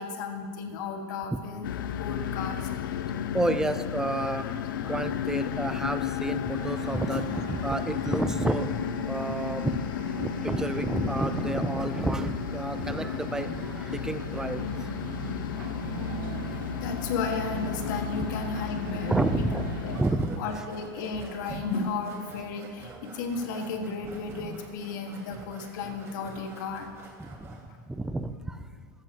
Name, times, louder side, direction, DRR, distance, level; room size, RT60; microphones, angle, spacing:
voice 1, 0.0-1.7 2.0-3.2 7.1-7.2 8.5-8.6 16.2-16.5 16.8-19.5 19.8-20.0 20.4-26.9, left 4 dB, 70° left, 4 dB, 1.6 m, -34 dB
sound 1, 1.6-20.0, left 9 dB, 90° left, 0.6 m, -33 dB
voice 2, 3.3-4.5 4.8-8.7 9.1-9.8 10.2-14.9 19.1-19.6 19.9-20.4 27.2-27.6 27.9-28.6, right 2 dB, 5° right, 10 dB, 0.5 m, -30 dB
sound 2, 6.6-20.0, right 4 dB, 80° right, 1.8 m, -39 dB
sound 3, 19.9-27.7, right 3 dB, 25° right, 1.9 m, -46 dB
14.0 x 14.0 x 2.9 m, 2.1 s
supercardioid pair, 140°, 11 cm